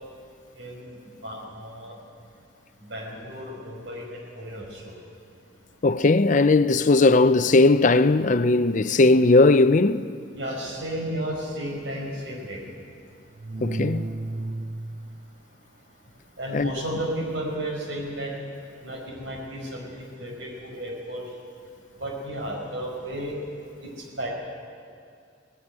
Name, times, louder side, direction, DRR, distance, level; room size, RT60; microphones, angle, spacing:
voice 1, 0.6-1.0 1.2-2.0 2.8-5.0 10.3-12.6 16.4-18.3 18.8-21.2 22.0-23.3 23.8-23.9 24.2-24.3, right 1 dB, 70° right, 5.3 m, -33 dB
voice 2, 5.8-10.1 13.6-14.1 16.5-16.7, left 3 dB, 40° left, 0.5 m, -18 dB
sound 1, 13.3-15.3 17.9-18.1, right 2 dB, 40° right, 0.4 m, -33 dB
18.0 x 17.0 x 9.6 m
head